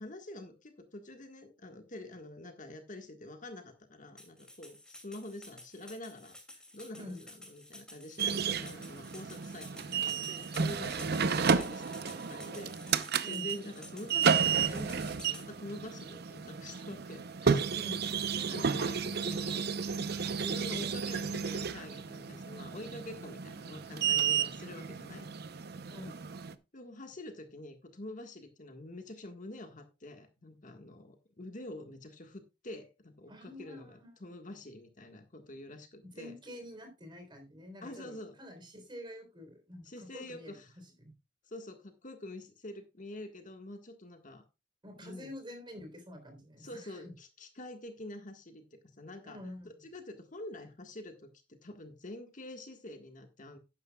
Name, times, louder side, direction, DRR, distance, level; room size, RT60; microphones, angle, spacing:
voice 1, 0.0-6.3 6.7-17.7 18.3-25.3 26.7-36.3 37.8-38.4 39.8-40.8 41.4-44.5 45.0-45.3 46.6-48.6 48.9-49.4 49.8-51.3 51.6-53.6, left 1 dB, 45° left, 6 dB, 1.6 m, -47 dB
sound 1, 4.2-15.5, left 1 dB, 5° left, 2.6 m, -52 dB
sound 2, 8.2-26.5, right 6 dB, 60° right, 0.8 m, -32 dB
voice 2, 17.7-18.1 25.9-26.2 33.3-34.1 36.0-40.6 40.8-41.1 44.8-47.1 49.2-49.7, left 1 dB, 25° right, 5 dB, 3.8 m, -47 dB
12.0 x 10.0 x 2.3 m, 0.26 s
head